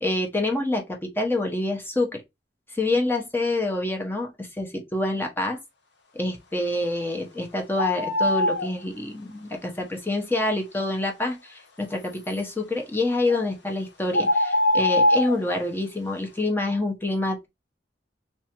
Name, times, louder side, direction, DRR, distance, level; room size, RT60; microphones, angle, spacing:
voice 1, 0.0-2.2 2.7-5.6 6.1-17.5, left 2 dB, 10° left, 0.7 m, -27 dB
sound 1, 7.8-8.7 13.3-13.4 14.1-15.4, left 1 dB, 85° left, 0.7 m, -22 dB
3.3 x 2.5 x 2.8 m
head